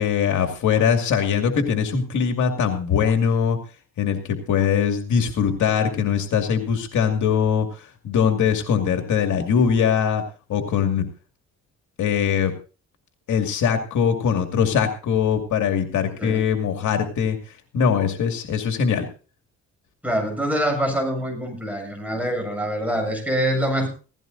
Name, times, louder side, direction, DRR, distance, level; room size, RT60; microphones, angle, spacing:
voice 1, 0.0-3.6 4.0-10.2 10.5-11.0 12.0-12.5 13.3-19.1, left 7 dB, 75° left, 4 dB, 2.4 m, -22 dB
voice 2, 20.0-23.9, equal, 5° right, 3 dB, 7.9 m, -25 dB
17.0 x 16.0 x 2.7 m, 0.35 s
cardioid pair, 90°, 30 cm